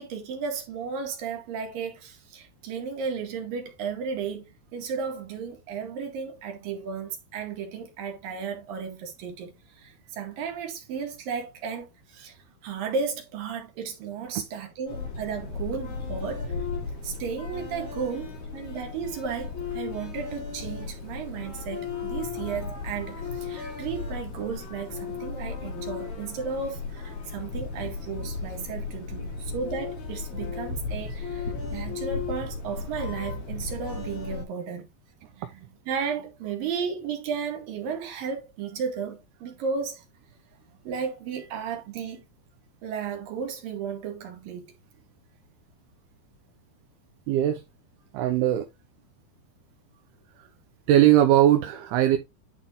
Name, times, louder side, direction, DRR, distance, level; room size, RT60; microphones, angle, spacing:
voice 1, 0.0-4.5 4.7-12.4 12.6-16.6 17.0-34.9 35.3-40.0 40.9-42.3 42.8-44.7, right 6 dB, 60° right, 3.6 m, -34 dB
sound 1, 14.9-34.4, left 4 dB, 75° left, 5.7 m, -35 dB
voice 2, 47.3-47.6 48.1-48.7 50.9-52.2, right 12 dB, 80° right, 2.7 m, -19 dB
11.0 x 4.0 x 3.8 m
omnidirectional pair, 4.6 m